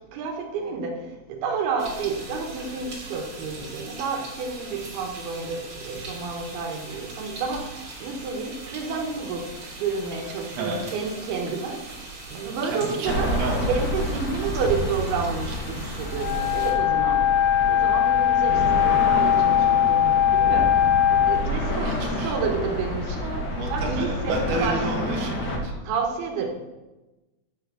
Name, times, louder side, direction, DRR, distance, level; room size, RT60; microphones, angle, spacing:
voice 1, 0.1-1.0 1.3-9.5 9.8-11.8 12.3-13.3 13.7-17.4 17.7-25.4 25.8-26.5, right 5 dB, 90° right, 2 dB, 3.1 m, -30 dB
sound 1, 1.8-16.7, right 2 dB, 40° right, 3.2 m, -41 dB
voice 2, 10.5-10.9 12.6-13.7 21.7-22.4 23.5-25.7, right 3 dB, 60° right, -1 dB, 3.2 m, -31 dB
sound 2, 13.0-25.6, left 1 dB, 65° left, 1.0 m, -29 dB
Wind instrument woodwind instrument, 16.1-21.4, left 10 dB, 85° left, 2.6 m, -20 dB
8.1 x 7.1 x 6.9 m, 1.1 s
omnidirectional pair, 4.4 m